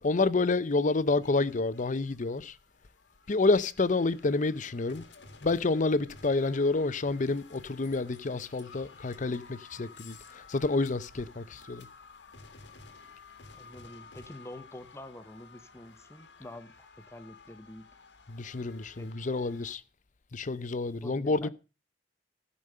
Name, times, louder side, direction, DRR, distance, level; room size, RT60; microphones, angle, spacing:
voice 1, 0.0-2.6 3.3-5.1 5.4-11.9 18.3-19.8 20.3-21.5, left 3 dB, 45° left, 0.6 m, -29 dB
sound 1, 1.2-19.8, left 4 dB, 80° left, 1.6 m, -53 dB
voice 2, 13.6-17.9 19.0-19.1 20.9-21.5, left 1 dB, 15° left, 0.9 m, -47 dB
15.5 x 5.3 x 6.5 m
head